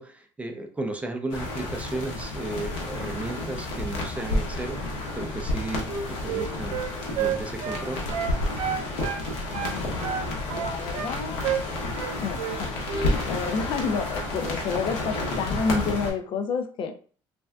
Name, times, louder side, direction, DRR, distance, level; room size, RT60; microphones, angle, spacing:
voice 1, 0.0-6.8 7.2-8.0 13.9-14.0, right 2 dB, 15° right, 5 dB, 0.4 m, -34 dB
sound 1, 1.3-16.1, left 2 dB, 90° left, 0.9 m, -31 dB
Wind instrument woodwind instrument, 5.8-9.2 9.5-11.1 11.4-11.7 11.9-12.6 12.9-13.1, right 8 dB, 80° right, 0.4 m, -30 dB
voice 2, 9.5-10.2 10.5-11.4 12.2-17.0, left 5 dB, 55° left, 7 dB, 0.4 m, -30 dB
3.3 x 2.6 x 2.2 m, 0.42 s
cardioid pair, 110°, 10 cm